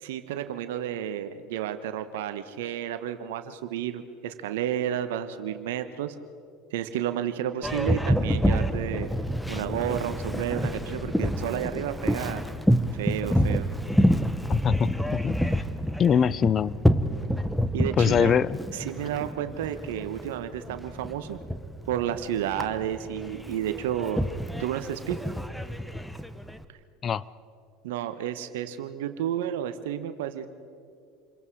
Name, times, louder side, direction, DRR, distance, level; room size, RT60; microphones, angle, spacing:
voice 1, 0.0-6.1 6.7-9.1 9.5-12.4 12.9-13.7 17.7-18.4 18.7-21.4 21.9-24.2 24.6-25.2 27.8-30.5, right 10 dB, 75° right, 10 dB, 1.2 m, -31 dB
Boat Water vehicle, 7.6-26.6, equal, ahead, 1.1 m, -28 dB
voice 2, 14.5-15.4 16.0-16.8 18.0-18.6 27.0-27.2, left 7 dB, 40° left, 20 dB, 0.6 m, -23 dB
28.5 x 22.5 x 4.8 m, 2.4 s
hypercardioid pair, 80°, 0 cm